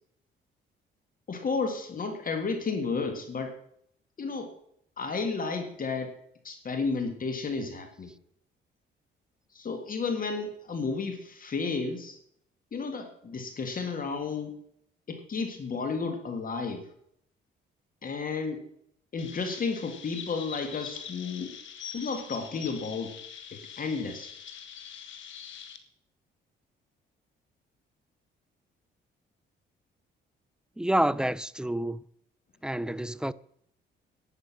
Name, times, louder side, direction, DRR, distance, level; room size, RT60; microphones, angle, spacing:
voice 1, 1.3-3.5 4.2-4.5 5.0-6.1 6.4-8.1 9.5-12.2 12.7-14.5 15.1-16.8 18.0-18.6 19.1-21.5 21.9-23.1 23.5-24.3, left 4 dB, 45° left, 2.0 m, -32 dB
Chirp tweet, 19.2-25.8, left 8 dB, 75° left, 1.5 m, -44 dB
voice 2, 30.8-32.0 32.6-33.3, right 1 dB, 5° right, 0.4 m, -28 dB
11.5 x 9.6 x 6.1 m
cardioid pair, 90°, 20 cm